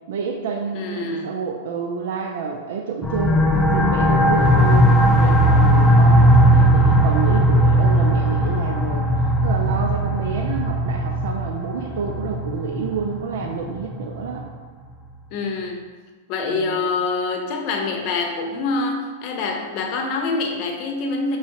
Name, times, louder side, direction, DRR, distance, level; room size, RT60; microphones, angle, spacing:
voice 1, 0.1-3.4 3.7-4.9 5.2-9.1 9.4-14.4 16.5-16.8, right 6 dB, 70° right, 2 dB, 0.4 m, -29 dB
voice 2, 0.7-1.3 15.3-15.8 16.3-21.4, left 3 dB, 45° left, 2 dB, 0.7 m, -25 dB
sound 1, 3.0-14.4, right 1 dB, 10° left, 0.4 m, -17 dB
5.5 x 3.0 x 2.9 m, 1.4 s
hypercardioid pair, 130°, 0 cm